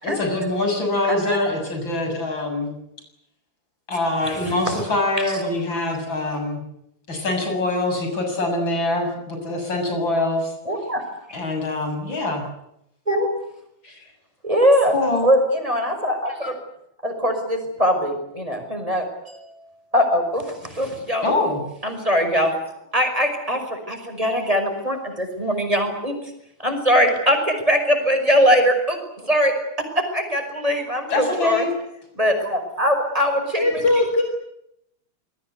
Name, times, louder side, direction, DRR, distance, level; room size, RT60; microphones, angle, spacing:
voice 1, 0.0-2.7 3.9-6.6 7.1-10.5 11.3-12.4 13.8-14.0 14.9-15.3 21.2-21.6 31.1-31.7, left 2 dB, 80° left, 4 dB, 7.9 m, -24 dB
voice 2, 1.1-1.5 4.4-4.7 5.3-5.4 10.7-11.0 13.1-13.3 14.4-14.9 15.2-16.6 17.0-19.4 19.9-21.2 21.8-26.2 26.6-29.5 30.0-31.7 32.2-33.8, equal, 15° right, 4 dB, 5.8 m, -21 dB
voice 3, 33.6-34.2, left 2 dB, 35° left, 4 dB, 3.7 m, -19 dB
27.0 x 21.0 x 8.2 m, 0.78 s
omnidirectional pair, 2.1 m